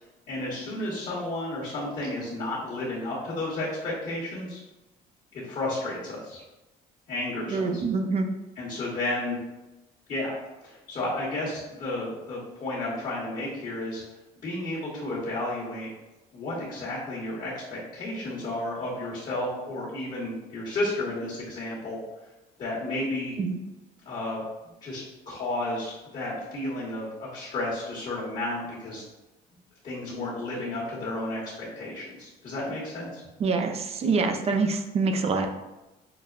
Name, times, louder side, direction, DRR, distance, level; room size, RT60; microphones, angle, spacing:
voice 1, 0.3-4.6 5.3-6.4 7.1-7.9 8.6-9.4 10.1-10.4 10.6-14.0 14.4-15.9 16.3-22.0 22.6-23.3 24.0-29.0 29.8-33.2, left 1 dB, 45° left, -7 dB, 1.2 m, -32 dB
voice 2, 7.5-8.3 23.4-23.6 33.4-35.5, right 4 dB, 35° right, 5 dB, 0.4 m, -25 dB
5.8 x 2.1 x 2.4 m, 1.0 s
cardioid pair, 110°, 17 cm